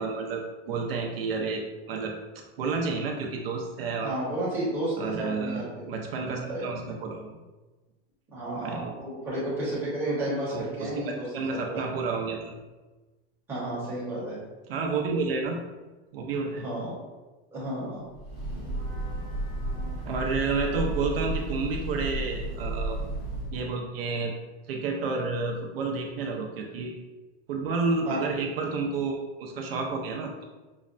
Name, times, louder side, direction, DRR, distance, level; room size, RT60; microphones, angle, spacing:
voice 1, 0.0-2.1 2.6-4.1 5.0-7.4 8.5-8.9 10.5-12.6 14.7-15.6 16.1-16.7 20.0-23.0 23.5-24.3 24.7-26.9 27.5-30.4, right 4 dB, 60° right, 1 dB, 0.6 m, -30 dB
voice 2, 4.0-5.9 6.2-6.7 8.3-11.8 13.5-14.4 16.5-17.0 17.5-18.1 28.1-28.2, right 1 dB, 5° right, -9 dB, 0.8 m, -32 dB
Breathing / Train, 18.1-23.7, right 1 dB, 10° left, 0.4 m, -33 dB
5.5 x 2.1 x 2.5 m, 1.2 s
supercardioid pair, 180°, 33 cm